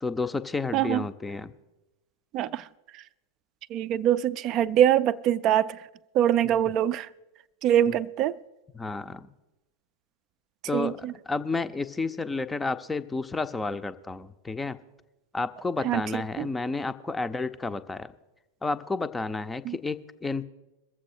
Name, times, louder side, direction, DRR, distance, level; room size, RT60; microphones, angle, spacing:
voice 1, 0.0-1.5 6.4-6.6 7.9-8.0 8.7-9.3 10.7-14.8 15.3-18.1 18.6-20.4, left 3 dB, 10° left, 0.6 m, -31 dB
voice 2, 0.7-1.0 2.3-2.7 3.7-5.8 6.1-7.1 7.6-8.3 10.7-11.1 15.8-16.5 19.7-19.8, right 11 dB, 35° right, 0.4 m, -24 dB
22.5 x 7.6 x 4.3 m
figure-of-eight pair, 90°, 0 cm